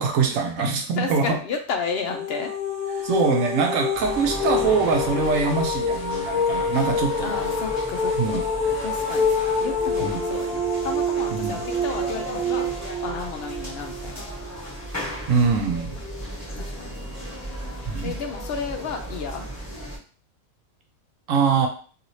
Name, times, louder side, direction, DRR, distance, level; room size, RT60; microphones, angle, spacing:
voice 1, 0.0-1.4 3.0-7.4 8.2-8.4 10.0-10.2 11.3-11.6 15.3-16.0 17.9-18.2 21.3-21.7, right 5 dB, 70° right, 4 dB, 0.9 m, -23 dB
voice 2, 1.0-2.5 2.9-3.1 7.2-8.4 8.8-9.3 9.6-12.7 13.0-14.3 16.6-17.2 18.0-19.4, left 5 dB, 65° left, 5 dB, 0.6 m, -32 dB
sound 1, 1.9-14.8, left 3 dB, 10° right, 0.4 m, -27 dB
sound 2, 3.9-20.0, equal, 10° left, 1.3 m, -36 dB
3.0 x 2.8 x 2.6 m, 0.40 s
omnidirectional pair, 1.5 m